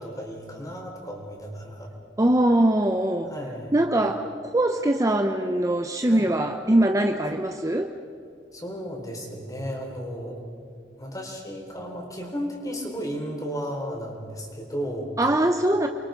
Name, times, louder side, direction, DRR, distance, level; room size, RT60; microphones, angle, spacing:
voice 1, 0.0-1.9 3.3-3.8 6.1-6.3 7.2-7.3 8.5-10.4 11.0-15.1, equal, 20° left, 1 dB, 4.1 m, -34 dB
voice 2, 2.2-3.3 3.7-7.9 15.2-15.9, right 1 dB, 20° right, 5 dB, 0.8 m, -22 dB
29.5 x 23.0 x 5.2 m, 2.4 s
head